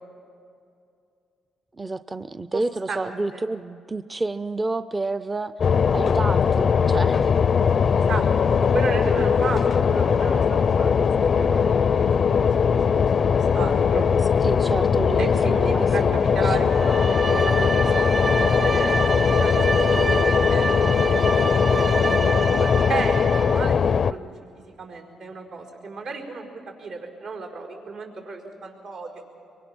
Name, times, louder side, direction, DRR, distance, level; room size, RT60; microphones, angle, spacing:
voice 1, 1.8-5.5 5.9-7.3 14.4-16.7, right 2 dB, 20° right, 13 dB, 0.5 m, -30 dB
voice 2, 2.9-3.4 7.9-12.0 12.4-13.1 13.5-14.1 15.2-19.0 19.3-19.8 20.1-24.3 24.8-26.5 26.8-29.2, right 4 dB, 85° right, 0 dB, 4.7 m, -33 dB
sound 1, 5.6-24.1, left 6 dB, 50° left, 0.4 m, -20 dB
Bowed string instrument, 16.7-23.8, right 3 dB, 40° right, 1.3 m, -28 dB
24.5 x 23.0 x 6.1 m, 2.5 s
cardioid pair, 90°, 0 cm